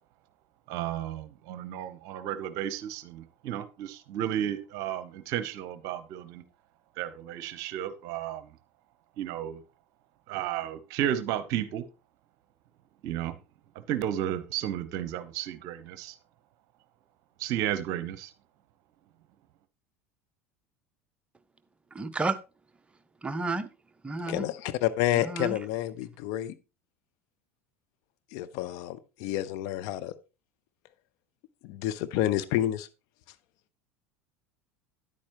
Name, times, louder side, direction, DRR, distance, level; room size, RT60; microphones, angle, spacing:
voice 1, 0.7-6.4 7.0-8.5 9.2-9.6 10.3-11.8 13.0-13.3 13.9-16.1 17.4-18.3, right 11 dB, 50° right, 0.8 m, -33 dB
voice 2, 21.9-22.4 23.2-23.7 24.0-24.5 25.1-25.6, right 3 dB, 15° right, 0.7 m, -31 dB
voice 3, 24.3-26.5 28.3-30.1 31.6-32.9, left 13 dB, 55° left, 0.7 m, -29 dB
9.8 x 8.6 x 3.0 m
figure-of-eight pair, 75°, 7 cm